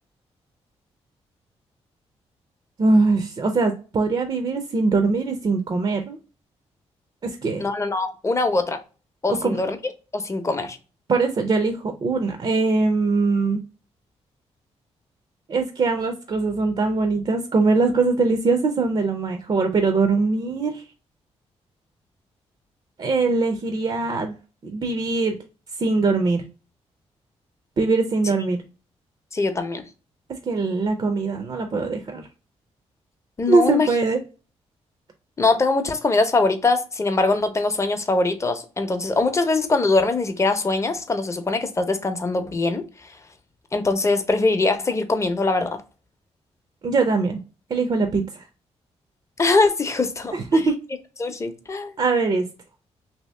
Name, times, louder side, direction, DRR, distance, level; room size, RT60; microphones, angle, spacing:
voice 1, 2.8-6.2 7.2-7.7 9.4-9.6 11.1-13.6 15.5-20.8 23.0-24.4 24.6-25.4 25.8-26.4 27.8-28.6 30.5-32.2 33.5-34.2 46.8-47.4 47.7-48.4 50.3-50.7 52.0-52.5, right 3 dB, 45° right, 0.5 m, -22 dB
voice 2, 7.6-8.8 9.2-9.8 10.1-10.8 29.3-29.8 33.4-33.9 35.4-42.8 43.7-45.8 49.4-50.6 51.2-51.9, left 3 dB, 25° left, 0.6 m, -22 dB
2.8 x 2.7 x 3.2 m
cardioid pair, 85°, 11 cm